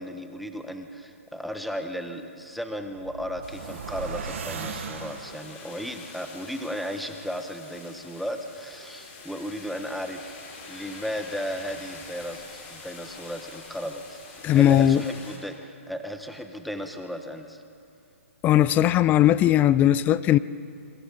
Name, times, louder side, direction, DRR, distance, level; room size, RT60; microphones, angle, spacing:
voice 1, 0.0-10.3 10.7-17.6, equal, ahead, 6 dB, 1.2 m, -35 dB
sound 1, 2.8-5.7, right 5 dB, 65° right, 2.3 m, -37 dB
sound 2, 3.4-15.4, left 4 dB, 40° left, 5.9 m, -45 dB
voice 2, 14.4-15.0 18.4-20.4, left 12 dB, 20° left, 17 dB, 0.5 m, -18 dB
29.5 x 23.5 x 4.2 m, 2.5 s
hypercardioid pair, 130°, 7 cm